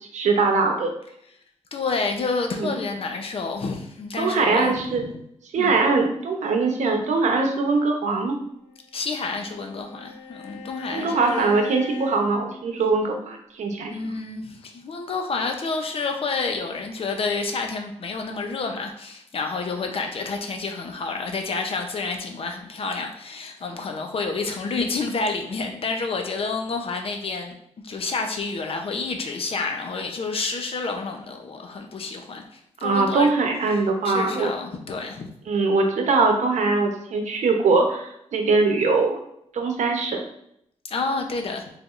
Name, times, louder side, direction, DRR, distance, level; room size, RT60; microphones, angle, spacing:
voice 1, 0.1-0.9 2.6-2.8 4.2-5.0 5.5-8.4 10.9-14.1 32.8-34.5 35.5-39.2 39.5-40.2, right 3 dB, 90° right, 3 dB, 0.8 m, -22 dB
voice 2, 1.7-4.8 5.1-5.2 5.6-5.8 8.9-11.5 13.9-27.6 27.8-33.3 33.7-35.3 40.8-41.6, left 4 dB, 50° left, 4 dB, 0.6 m, -29 dB
Bowed string instrument, 8.7-13.2, left 4 dB, 80° left, 0.9 m, -40 dB
4.9 x 3.4 x 2.5 m, 0.74 s
wide cardioid pair, 130°, 12 cm